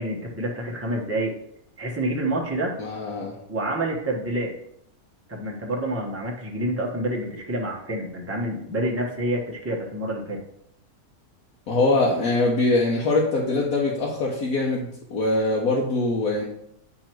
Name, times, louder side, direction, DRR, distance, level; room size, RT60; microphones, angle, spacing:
voice 1, 0.0-1.3 1.8-2.7 3.2-4.5 5.3-10.4, right 1 dB, 10° right, -1 dB, 0.9 m, -28 dB
voice 2, 2.8-3.4 11.7-16.4, left 2 dB, 85° left, -3 dB, 1.4 m, -23 dB
8.5 x 3.0 x 4.5 m, 0.74 s
omnidirectional pair, 1.5 m